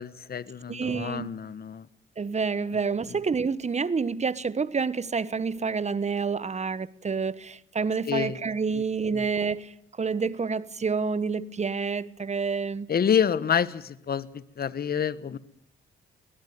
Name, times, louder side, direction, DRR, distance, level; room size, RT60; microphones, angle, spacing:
voice 1, 0.0-1.9 3.1-3.2 8.0-8.4 8.7-8.8 9.1-9.3 12.9-15.4, left 8 dB, 50° left, 1.2 m, -28 dB
voice 2, 0.7-1.3 2.2-9.7 10.0-12.9, right 5 dB, 35° right, 1.2 m, -28 dB
22.0 x 19.0 x 9.4 m
cardioid pair, 75°, 20 cm